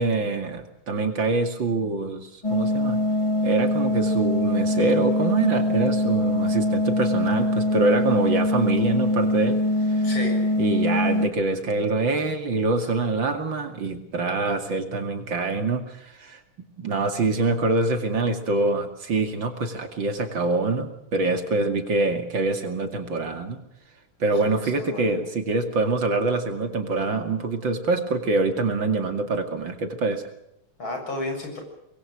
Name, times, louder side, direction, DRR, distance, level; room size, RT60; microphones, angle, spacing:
voice 1, 0.0-3.0 3.4-9.6 9.9-10.1 10.6-16.4 16.8-23.6 24.2-30.2, right 3 dB, 60° right, 6 dB, 3.1 m, -25 dB
sound 1, 2.4-11.3, left 1 dB, 20° left, 0.8 m, -23 dB
voice 2, 10.0-10.5 24.4-25.1 30.8-31.6, left 2 dB, 65° left, 3 dB, 7.8 m, -33 dB
25.5 x 21.5 x 6.4 m, 0.80 s
omnidirectional pair, 2.4 m